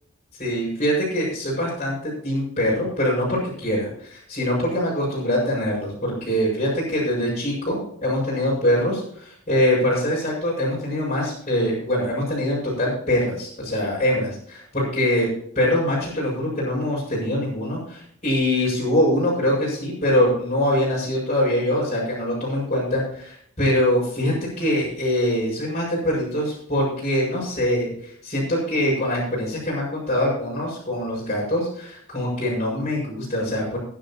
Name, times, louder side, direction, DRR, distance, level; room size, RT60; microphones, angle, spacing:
voice 1, 0.3-15.3 15.5-33.8, left 1 dB, 30° left, -8 dB, 5.9 m, -23 dB
18.0 x 10.0 x 2.9 m, 0.66 s
head